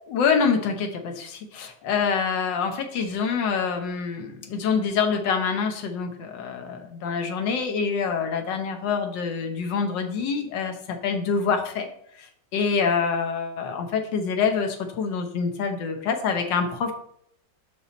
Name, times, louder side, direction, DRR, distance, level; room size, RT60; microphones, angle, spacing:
voice 1, 0.1-11.9 12.2-16.9, left 5 dB, 85° left, 5 dB, 1.6 m, -26 dB
6.9 x 5.7 x 4.1 m, 0.69 s
omnidirectional pair, 1.9 m